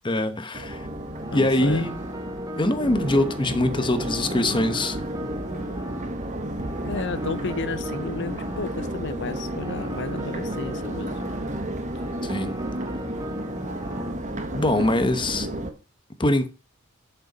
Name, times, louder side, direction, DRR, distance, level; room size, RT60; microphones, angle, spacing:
voice 1, 0.0-0.9 1.3-2.0 2.5-5.0 12.2-12.5 14.5-15.5 16.2-16.5, left 1 dB, 25° left, 1.0 m, -23 dB
Crowd, 0.5-15.7, right 1 dB, 35° right, 1.4 m, -33 dB
sound 1, 0.7-14.1, equal, 20° right, 1.0 m, -37 dB
voice 2, 1.3-1.9 6.8-11.2, left 3 dB, 55° left, 0.8 m, -32 dB
8.0 x 6.8 x 5.4 m
head